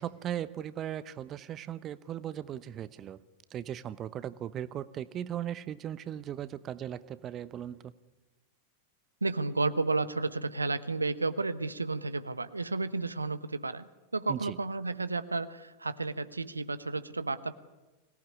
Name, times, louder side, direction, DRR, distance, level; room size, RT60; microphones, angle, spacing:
voice 1, 0.0-3.2 3.5-7.9 14.3-14.6, right 10 dB, 30° right, 16 dB, 0.9 m, -38 dB
voice 2, 9.2-17.5, right 3 dB, 80° right, 13 dB, 1.0 m, -32 dB
23.5 x 18.5 x 9.8 m, 1.1 s
figure-of-eight pair, 90°, 0 cm